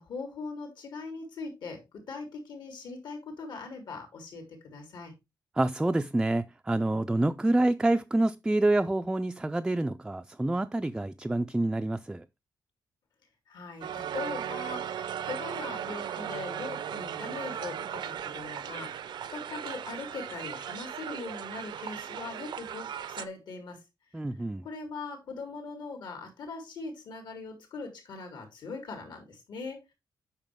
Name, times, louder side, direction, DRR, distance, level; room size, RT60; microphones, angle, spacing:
voice 1, 0.0-5.1 13.5-23.8 24.6-29.9, left 4 dB, 75° left, 3.5 m, -41 dB
voice 2, 5.6-12.2 24.1-24.6, right 2 dB, 10° right, 0.3 m, -27 dB
Crowd, 13.8-23.3, right 9 dB, 85° right, 0.6 m, -37 dB
9.0 x 5.7 x 3.6 m
wide cardioid pair, 140°, 8 cm